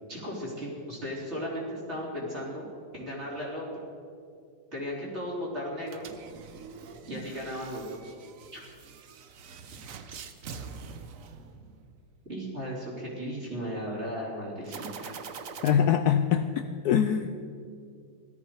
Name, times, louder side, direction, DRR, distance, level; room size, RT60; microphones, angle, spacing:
voice 1, 0.1-2.7 2.9-3.7 4.7-6.1 7.1-8.1 8.5-8.6 12.3-15.1, equal, 35° right, -5 dB, 4.0 m, -36 dB
sound 1, 5.8-12.0 14.6-15.7, right 6 dB, 55° right, 1.0 m, -44 dB
voice 2, 15.6-17.3, left 8 dB, 70° left, 9 dB, 1.0 m, -24 dB
17.5 x 13.0 x 4.8 m, 2.3 s
omnidirectional pair, 2.0 m